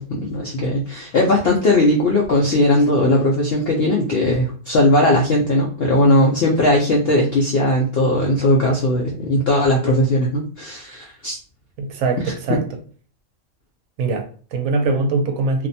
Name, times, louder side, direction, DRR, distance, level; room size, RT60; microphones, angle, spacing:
voice 1, 0.0-11.4 12.5-12.6, left 1 dB, 70° left, 0.5 m, -18 dB
voice 2, 11.8-12.6 14.0-15.7, right 3 dB, 70° right, 0.9 m, -22 dB
2.5 x 2.1 x 2.6 m
omnidirectional pair, 1.5 m